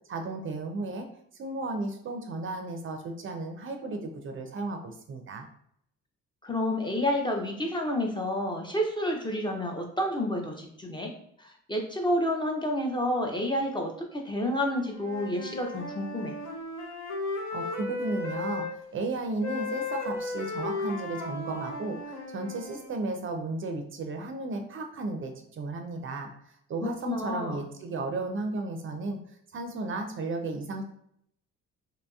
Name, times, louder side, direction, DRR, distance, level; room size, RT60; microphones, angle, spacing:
voice 1, 0.1-1.1 1.4-5.5 17.5-26.3 26.7-29.2 29.5-30.8, right 3 dB, 45° right, 5 dB, 0.4 m, -34 dB
voice 2, 6.4-11.1 11.4-16.4 26.8-27.6, left 1 dB, 15° left, 1 dB, 0.5 m, -29 dB
Wind instrument woodwind instrument, 14.8-18.7 19.4-22.9, left 3 dB, 70° left, 0.8 m, -35 dB
2.8 x 2.7 x 2.2 m, 0.71 s
cardioid pair, 90°, 30 cm